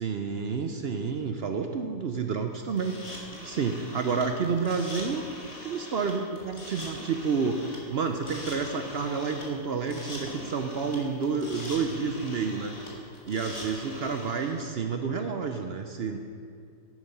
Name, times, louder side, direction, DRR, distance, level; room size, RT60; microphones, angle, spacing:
voice 1, 0.0-3.0 3.3-5.2 5.6-12.7 13.2-16.2, right 5 dB, 65° right, 6 dB, 0.6 m, -30 dB
sound 1, 2.7-14.6, left 1 dB, 20° left, 1.9 m, -42 dB
11.0 x 9.2 x 5.4 m, 2.4 s
omnidirectional pair, 1.7 m